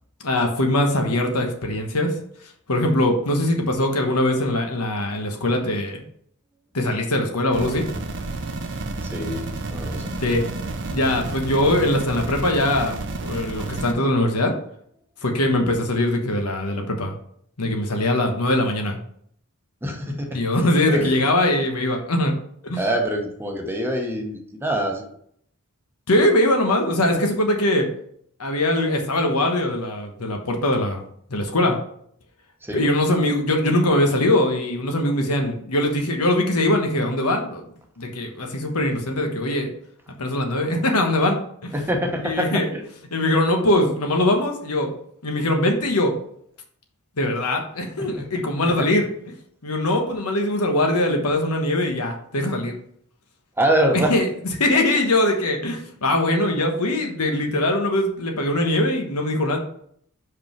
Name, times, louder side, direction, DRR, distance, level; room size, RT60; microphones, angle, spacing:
voice 1, 0.2-2.2 2.7-6.0 6.7-7.9 10.2-10.5 10.8-14.5 15.2-17.1 17.6-19.0 20.3-22.3 22.6-22.8 26.1-27.9 28.4-31.0 31.3-31.7 32.7-37.6 38.0-39.7 40.2-41.7 42.2-42.7 43.1-44.9 45.2-46.1 47.2-49.1 49.6-52.7 54.1-54.3 54.6-59.6, left 1 dB, 90° left, 3 dB, 1.3 m, -21 dB
sound 1, 7.5-13.9, right 2 dB, 55° right, 0.7 m, -31 dB
voice 2, 9.0-9.4 9.7-10.1 19.8-20.4 20.9-21.2 22.8-25.1 32.6-32.8 41.7-42.8 48.0-48.9 53.6-54.2, right 1 dB, 10° right, 2 dB, 0.9 m, -25 dB
5.5 x 4.9 x 4.6 m, 0.66 s
head